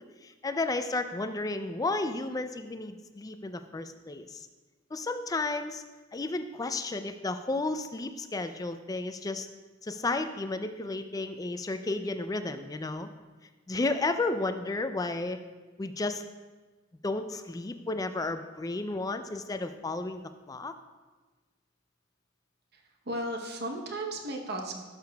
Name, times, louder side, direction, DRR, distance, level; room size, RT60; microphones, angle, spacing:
voice 1, 0.2-4.5 4.9-5.8 6.1-9.5 9.8-13.1 13.7-15.4 15.8-16.2 17.0-20.2 20.5-20.7, left 2 dB, 20° left, 9 dB, 0.3 m, -32 dB
voice 2, 22.7-24.8, right 1 dB, 55° right, 2 dB, 0.9 m, -35 dB
11.5 x 6.7 x 2.3 m, 1.3 s
head